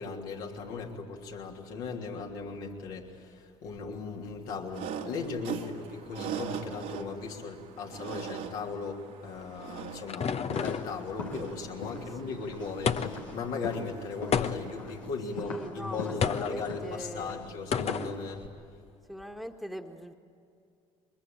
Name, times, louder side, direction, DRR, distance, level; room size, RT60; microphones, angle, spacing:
voice 1, 0.0-18.5, left 4 dB, 70° left, 0 dB, 3.2 m, -37 dB
sound 1, 4.7-15.0, right 8 dB, 65° right, 2.0 m, -42 dB
sound 2, 9.4-11.0 12.9-13.3 14.3-14.9 16.2-16.6 17.7-18.2, left 7 dB, 40° left, 1.0 m, -30 dB
sound 3, 10.5-18.5, left 4 dB, 90° left, 2.0 m, -42 dB
voice 2, 11.9-12.4 15.3-17.4 19.1-20.2, equal, ahead, 4 dB, 1.7 m, -42 dB
23.0 x 21.5 x 8.9 m, 2.5 s
hypercardioid pair, 55°, 16 cm